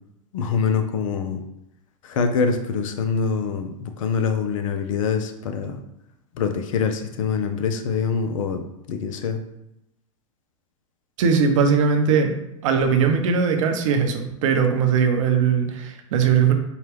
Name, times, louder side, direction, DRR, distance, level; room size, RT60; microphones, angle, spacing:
voice 1, 0.3-1.4 2.0-5.8 6.3-9.4, left 5 dB, 70° left, 7 dB, 0.6 m, -24 dB
voice 2, 11.2-12.3 12.6-16.5, right 6 dB, 65° right, 5 dB, 0.7 m, -20 dB
4.6 x 2.3 x 3.4 m, 0.84 s
hypercardioid pair, 95°, 17 cm